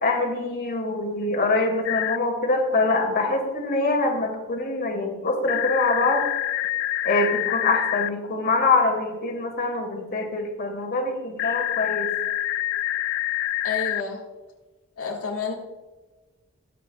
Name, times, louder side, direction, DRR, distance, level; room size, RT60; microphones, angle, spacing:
voice 1, 0.0-6.2 7.0-12.1, left 3 dB, 45° left, 2 dB, 2.0 m, -24 dB
sound 1, 1.8-2.2 5.5-8.1 11.4-14.0, left 14 dB, 65° left, 0.3 m, -26 dB
voice 2, 13.6-14.2 15.0-15.5, left 4 dB, 80° left, -1 dB, 1.6 m, -30 dB
21.0 x 7.5 x 2.3 m, 1.2 s
head